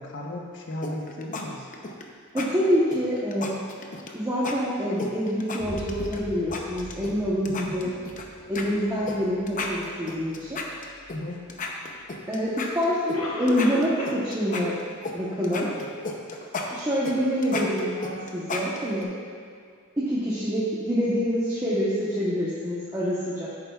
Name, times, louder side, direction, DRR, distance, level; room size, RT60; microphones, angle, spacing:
voice 1, 0.0-1.7 7.4-7.9 11.1-11.4, left 1 dB, 60° left, -1 dB, 1.1 m, -35 dB
sound 1, 0.8-1.4 1.7-2.0 2.4-2.5 2.9-4.1 4.4-4.6 5.0-6.2 6.5-7.1 7.5-8.2 8.6-8.7 9.1-9.2 9.5-11.2 11.5-13.2 13.5-15.2 15.4-19.0, left 3 dB, 40° left, 0.7 m, -34 dB
voice 2, 2.3-3.6 4.1-7.9 8.5-10.6 12.3-14.7 15.1-15.7 16.7-19.1 20.0-23.5, equal, 15° right, -9 dB, 1.0 m, -26 dB
Boom, 5.6-13.4, equal, 55° right, 2.1 m, -44 dB
Cough, 12.0-12.1 13.1-14.3 14.5-14.6 15.2-15.3 15.8-15.9, left 1 dB, 90° left, 1.2 m, -33 dB
10.5 x 8.6 x 2.4 m, 2.1 s
head